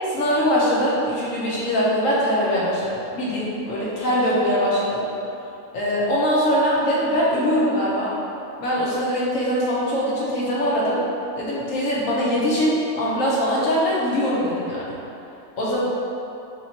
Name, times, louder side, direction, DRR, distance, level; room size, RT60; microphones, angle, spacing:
voice 1, 0.1-5.1 5.7-8.1 8.6-11.0 11.4-15.0 15.6-15.8, equal, 65° left, -6 dB, 1.2 m, -22 dB
3.0 x 3.0 x 4.1 m, 2.8 s
omnidirectional pair, 1.5 m